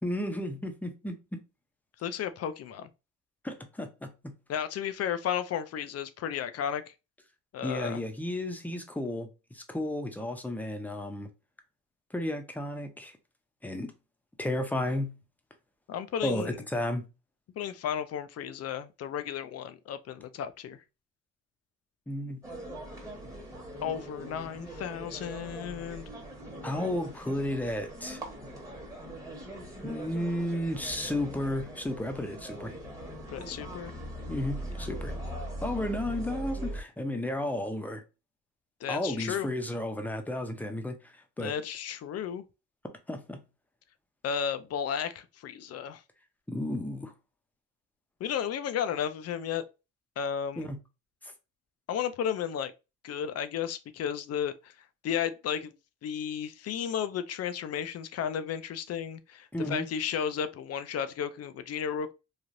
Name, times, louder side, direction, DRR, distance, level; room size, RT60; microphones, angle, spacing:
voice 1, 0.0-1.4 3.4-4.1 7.6-11.3 12.1-13.2 13.6-13.9 14.4-15.1 16.2-17.0 22.1-22.4 26.6-28.2 29.8-32.7 34.3-35.1 35.6-38.0 38.9-41.5 43.1-43.4 46.5-47.1 50.6-50.8 51.2-51.3 59.5-59.9, left 1 dB, 5° left, 0.6 m, -33 dB
voice 2, 2.0-2.9 4.5-6.9 7.5-8.0 15.9-16.6 17.6-20.8 23.8-26.1 33.3-33.9 38.8-39.5 41.4-42.4 44.2-46.0 48.2-49.6 50.2-50.7 51.9-52.7 53.0-54.7 55.0-55.7 56.0-62.1, left 8 dB, 55° left, 0.4 m, -33 dB
sound 1, 22.4-36.8, right 1 dB, 10° right, 1.1 m, -41 dB
3.2 x 2.4 x 2.6 m
cardioid pair, 90°, 30 cm